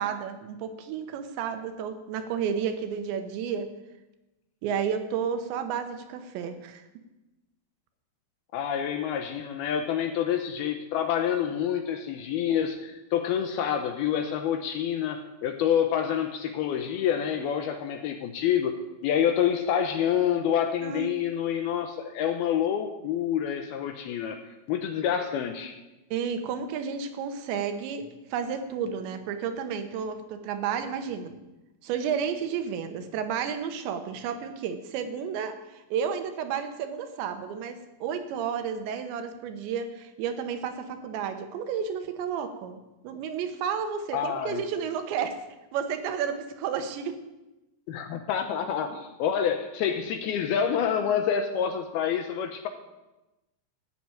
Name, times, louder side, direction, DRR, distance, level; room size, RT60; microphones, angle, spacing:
voice 1, 0.0-3.7 4.6-6.8 20.8-21.1 26.1-31.4 31.8-42.8 43.0-45.4 45.7-47.2, right 7 dB, 75° right, 8 dB, 3.2 m, -32 dB
voice 2, 8.5-18.7 19.0-24.4 24.7-25.8 44.1-44.6 47.9-52.7, left 9 dB, 80° left, 7 dB, 2.3 m, -27 dB
14.5 x 6.8 x 9.0 m, 1.0 s
omnidirectional pair, 5.3 m